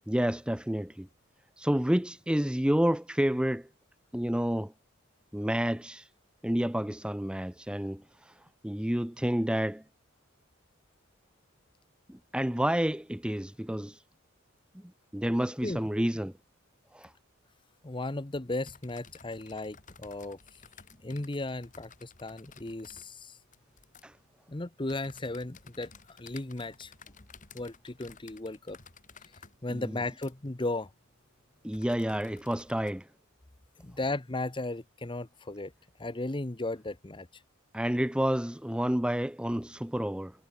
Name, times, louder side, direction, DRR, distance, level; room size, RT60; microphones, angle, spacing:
voice 1, 0.1-1.1 1.6-3.7 4.1-4.7 5.3-6.1 6.4-8.3 8.6-9.8 12.1-14.0 15.1-16.3 16.9-17.1 24.0-24.1 29.7-29.8 31.6-33.1 37.7-40.3, equal, 5° right, 0.7 m, -29 dB
voice 2, 17.8-20.6 21.0-23.4 24.5-26.9 27.5-28.8 29.6-30.9 33.8-35.7 36.0-37.3, left 2 dB, 25° left, 1.0 m, -36 dB
sound 1, 18.2-32.9, left 5 dB, 40° left, 3.7 m, -56 dB
head